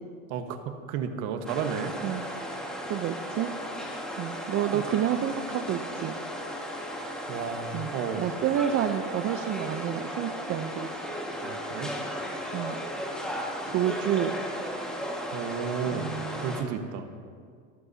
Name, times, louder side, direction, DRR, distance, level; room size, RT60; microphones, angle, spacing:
voice 1, 0.3-1.9 4.7-4.8 7.3-8.3 11.4-11.9 15.3-16.1 16.4-17.1, right 7 dB, 60° right, 7 dB, 1.5 m, -32 dB
sound 1, 1.5-16.6, equal, ahead, 1.8 m, -35 dB
voice 2, 2.9-3.5 4.2-6.1 7.7-10.9 12.5-12.8 13.7-14.3 15.9-16.6, right 10 dB, 40° right, 6 dB, 0.8 m, -29 dB
26.0 x 14.0 x 2.9 m, 2.1 s
supercardioid pair, 110°, 35 cm